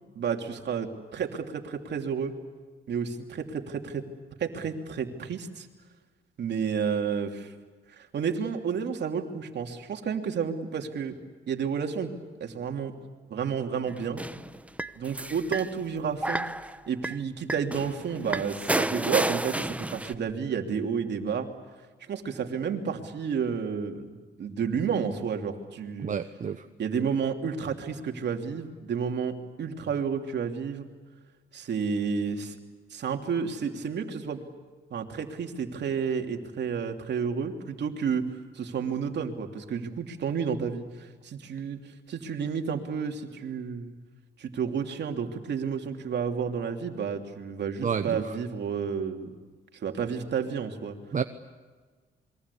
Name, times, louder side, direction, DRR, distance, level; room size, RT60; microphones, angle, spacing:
voice 1, 0.1-2.3 2.9-4.0 4.4-5.7 6.4-7.5 7.9-11.1 11.5-12.1 12.4-12.9 13.3-14.2 15.0-16.5 16.9-21.5 22.1-26.1 26.8-30.9 31.5-32.6 32.9-34.4 34.9-38.2 38.5-41.8 42.1-43.9 44.4-49.3 49.7-50.9, right 6 dB, 60° right, 4 dB, 3.0 m, -31 dB
sound 1, 13.9-15.7 16.2-16.8 17.0-17.2 17.5-20.1, right 1 dB, 5° right, 0.9 m, -31 dB
voice 2, 26.0-26.7 47.8-48.3 51.1-51.2, right 7 dB, 40° right, 8 dB, 1.0 m, -30 dB
27.5 x 22.5 x 8.5 m, 1.4 s
cardioid pair, 90°, 20 cm